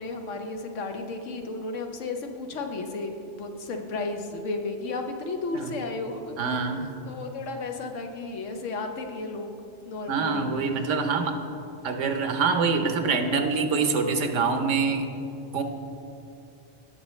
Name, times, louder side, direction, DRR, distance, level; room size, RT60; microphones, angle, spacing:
voice 1, 0.0-6.3 7.0-9.6 9.9-10.5, left 3 dB, 85° left, 5 dB, 1.2 m, -33 dB
voice 2, 6.4-6.9 10.1-11.4 11.8-15.1 15.5-15.6, right 4 dB, 75° right, 6 dB, 1.1 m, -25 dB
17.5 x 6.2 x 3.1 m, 2.8 s
omnidirectional pair, 1.3 m